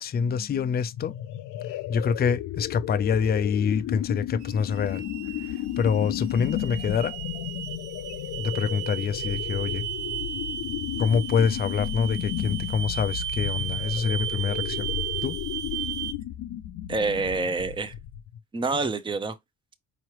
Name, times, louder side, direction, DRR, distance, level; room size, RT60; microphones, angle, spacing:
voice 1, 0.0-1.1 1.9-5.0 5.4-7.2 8.4-9.9 11.0-14.9 15.2-15.4, left 6 dB, 30° left, 0.4 m, -26 dB
sound 1, 0.8-18.4, left 12 dB, 85° left, 0.6 m, -33 dB
sound 2, 4.4-16.1, right 12 dB, 75° right, 0.6 m, -35 dB
voice 2, 16.9-17.9 18.5-19.4, right 3 dB, 15° right, 0.6 m, -27 dB
4.8 x 3.0 x 3.0 m
cardioid pair, 90°, 30 cm